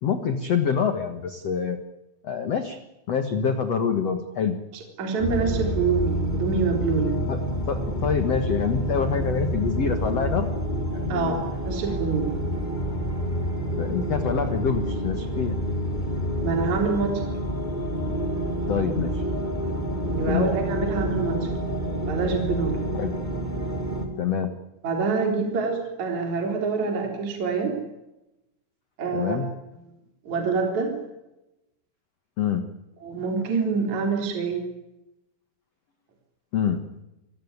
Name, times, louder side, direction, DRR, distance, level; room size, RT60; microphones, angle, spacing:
voice 1, 0.0-1.8 2.2-2.8 3.1-4.6 7.3-10.5 10.9-11.4 13.8-15.6 18.7-19.2 20.3-20.5 22.9-23.1 24.2-24.5 29.1-29.5 32.4-32.7 36.5-36.8, left 7 dB, 80° left, 8 dB, 1.4 m, -26 dB
voice 2, 4.7-7.2 11.1-12.4 16.4-17.2 20.1-21.5 22.1-22.8 24.8-27.8 29.0-29.5 30.3-30.9 33.0-34.7, right 5 dB, 40° right, 3 dB, 4.5 m, -26 dB
sound 1, 5.2-24.1, equal, 10° left, 3.1 m, -28 dB
28.0 x 17.0 x 9.5 m, 0.95 s
omnidirectional pair, 5.5 m